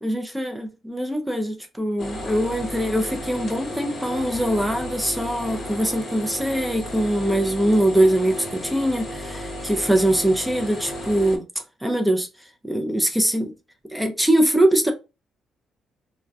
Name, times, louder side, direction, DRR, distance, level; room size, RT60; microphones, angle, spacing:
voice 1, 0.0-11.4 11.8-13.5 13.9-14.9, right 1 dB, 5° right, 0.4 m, -22 dB
sound 1, 2.0-11.4, left 1 dB, 35° left, 0.8 m, -33 dB
2.2 x 2.1 x 2.5 m
cardioid pair, 90°, 0 cm